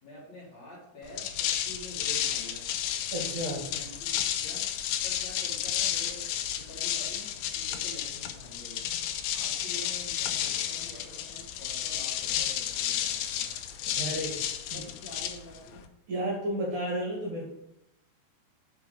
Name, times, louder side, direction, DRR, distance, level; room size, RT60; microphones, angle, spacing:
voice 1, 0.0-2.7 3.5-4.7 5.0-7.3 7.5-8.9 9.3-13.5 14.7-15.9, equal, 50° left, -6 dB, 2.6 m, -47 dB
sound 1, 1.0-15.9, left 11 dB, 85° left, 2.7 m, -32 dB
voice 2, 3.1-3.6 14.0-14.8 16.1-17.5, right 1 dB, 55° right, -4 dB, 2.7 m, -32 dB
6.4 x 4.8 x 5.1 m, 0.83 s
omnidirectional pair, 4.9 m